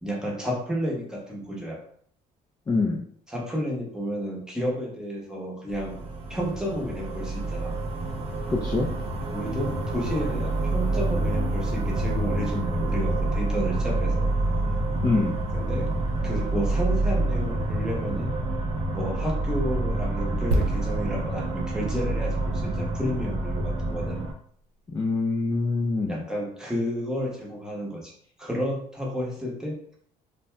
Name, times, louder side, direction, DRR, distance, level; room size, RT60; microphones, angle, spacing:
voice 1, 0.0-1.8 3.3-7.7 9.3-14.2 15.5-15.9 16.2-18.3 18.9-24.2 26.1-28.1 28.4-29.8, equal, 5° right, -3 dB, 0.8 m, -31 dB
voice 2, 2.7-3.0 8.5-8.9 15.0-15.4 24.9-26.2, left 3 dB, 20° left, -2 dB, 0.4 m, -25 dB
sound 1, 5.7-24.3, right 2 dB, 35° right, 0.5 m, -27 dB
sound 2, 20.5-24.2 24.4-24.6, right 1 dB, 90° right, 0.6 m, -32 dB
2.6 x 2.1 x 3.2 m, 0.62 s
cardioid pair, 110°, 17 cm